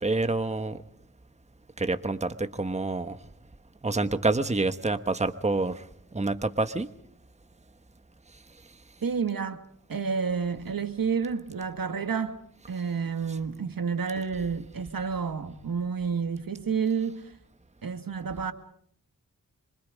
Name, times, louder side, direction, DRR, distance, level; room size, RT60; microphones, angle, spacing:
voice 1, 0.0-0.8 1.8-3.2 3.8-5.8 6.1-6.9, right 3 dB, 20° right, 1.2 m, -27 dB
voice 2, 9.0-9.6 9.9-12.4 12.7-17.2 17.8-18.5, right 6 dB, 75° right, 2.0 m, -30 dB
27.0 x 25.0 x 5.2 m
wide cardioid pair, 75°, 35 cm